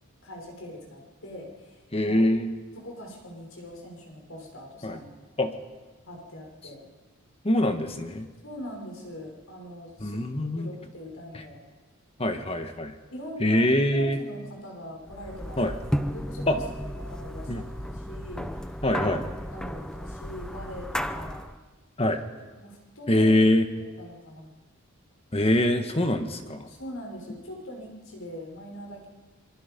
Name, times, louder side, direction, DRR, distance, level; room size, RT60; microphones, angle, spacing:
voice 1, 0.2-2.2 2.8-5.1 6.1-6.9 8.4-10.2 10.5-11.6 13.1-15.8 16.1-16.6 17.0-18.5 18.9-19.0 19.5-21.4 22.6-23.3 23.7-24.5 26.7-29.1, left 1 dB, 70° left, 0 dB, 5.8 m, -42 dB
voice 2, 1.9-2.5 4.8-5.0 5.4-5.5 7.4-8.3 10.0-10.7 12.2-12.9 13.4-14.2 15.6-15.7 16.5-16.6 17.5-17.6 18.8-19.2 22.0-22.2 23.1-23.7 25.3-26.7, left 1 dB, 30° left, 7 dB, 1.6 m, -23 dB
sound 1, 15.1-21.6, equal, 5° left, 0.8 m, -34 dB
26.5 x 23.5 x 5.4 m, 1.3 s
head